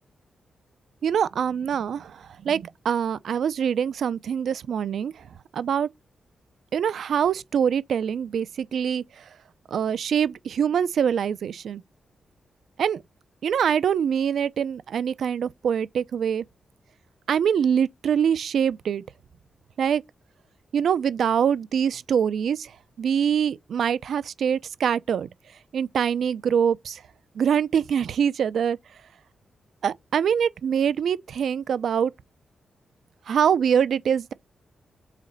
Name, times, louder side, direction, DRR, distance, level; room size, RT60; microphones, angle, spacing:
voice 1, 1.0-5.9 6.7-9.3 9.7-11.8 12.8-13.0 13.4-16.4 17.3-19.0 19.8-20.0 20.7-25.3 25.7-27.0 27.3-28.8 29.8-32.1 33.3-34.3, right 8 dB, 65° right, 0.6 m, -24 dB
7.5 x 4.2 x 6.4 m
wide cardioid pair, 170°, 0 cm